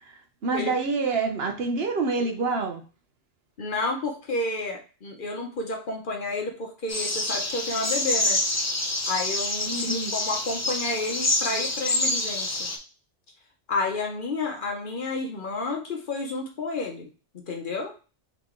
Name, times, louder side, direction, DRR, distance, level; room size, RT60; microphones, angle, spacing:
voice 1, 0.0-2.8 9.7-10.1, right 3 dB, 60° right, 4 dB, 0.9 m, -27 dB
voice 2, 3.6-8.4 9.1-12.7 13.7-17.1 17.3-17.9, left 3 dB, 50° left, 2 dB, 0.8 m, -30 dB
sound 1, 6.9-12.8, left 2 dB, 25° left, 0.3 m, -27 dB
3.9 x 3.2 x 3.6 m, 0.35 s
omnidirectional pair, 1.2 m